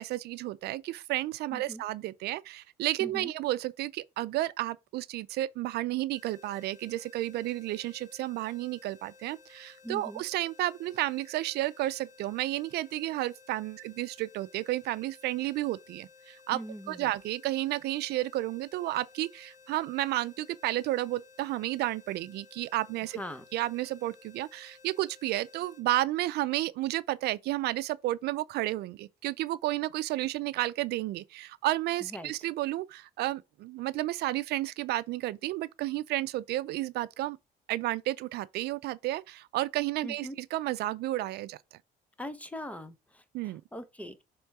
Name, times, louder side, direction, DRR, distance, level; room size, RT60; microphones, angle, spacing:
voice 1, 0.0-16.6 16.9-23.2 23.5-37.4 37.7-41.6 43.3-43.6, right 16 dB, 75° right, 0.5 m, -32 dB
voice 2, 1.5-1.8 3.0-3.3 9.8-10.2 16.5-17.1 23.1-23.4 32.0-32.3 40.0-40.3 42.2-44.2, equal, 10° left, 1.1 m, -41 dB
sound 1, 6.1-25.8, left 5 dB, 50° left, 1.3 m, -57 dB
7.0 x 3.7 x 4.8 m
cardioid pair, 110°, 17 cm